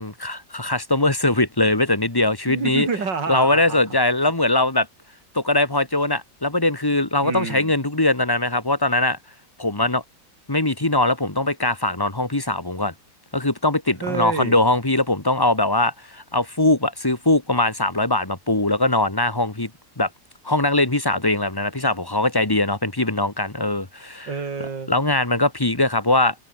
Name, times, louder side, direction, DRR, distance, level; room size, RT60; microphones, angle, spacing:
voice 1, 0.0-2.9 3.3-4.9 5.3-9.2 9.6-10.0 10.5-12.9 13.3-19.7 20.0-20.1 20.5-24.3 24.9-26.3, left 2 dB, 15° left, 1.9 m, -21 dB
voice 2, 2.5-3.8 7.2-7.7 14.0-14.6 24.3-24.9, right 5 dB, 85° right, 3.7 m, -28 dB
omnidirectional pair, 1.9 m